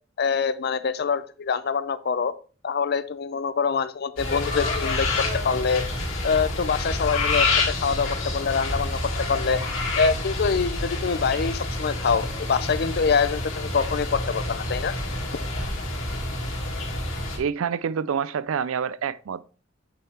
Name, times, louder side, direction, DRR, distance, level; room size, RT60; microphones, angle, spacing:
voice 1, 0.2-2.3 2.6-5.8 6.2-9.0 9.3-9.6 10.0-14.9, left 5 dB, 50° left, 0.5 m, -25 dB
sound 1, 4.2-17.4, left 2 dB, 80° left, 2.7 m, -28 dB
voice 2, 17.4-19.5, right 7 dB, 85° right, 0.4 m, -27 dB
8.7 x 4.5 x 3.5 m
head